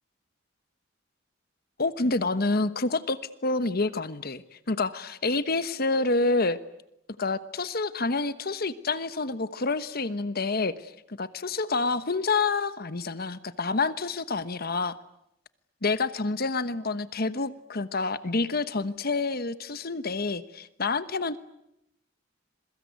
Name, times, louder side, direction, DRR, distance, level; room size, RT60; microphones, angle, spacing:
voice 1, 1.8-6.6 7.2-10.9 11.2-15.0 15.8-21.4, left 3 dB, 50° left, 13 dB, 1.2 m, -28 dB
27.0 x 23.0 x 9.4 m, 0.80 s
head